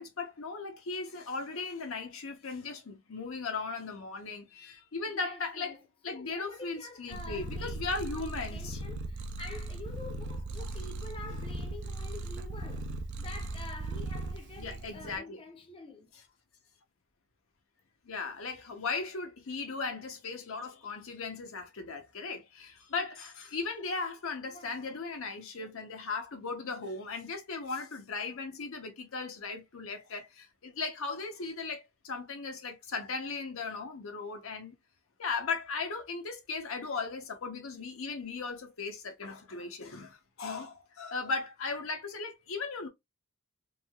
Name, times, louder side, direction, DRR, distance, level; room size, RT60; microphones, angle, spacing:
voice 1, 0.0-5.7 6.0-8.8 14.6-15.4 18.0-34.7 35.2-42.9, left 4 dB, 70° left, 0.8 m, -37 dB
voice 2, 5.1-16.1 24.5-25.0 25.6-25.7, left 3 dB, 25° left, 0.6 m, -47 dB
Purr, 7.1-15.2, right 2 dB, 55° right, 0.5 m, -38 dB
3.3 x 2.7 x 2.3 m
head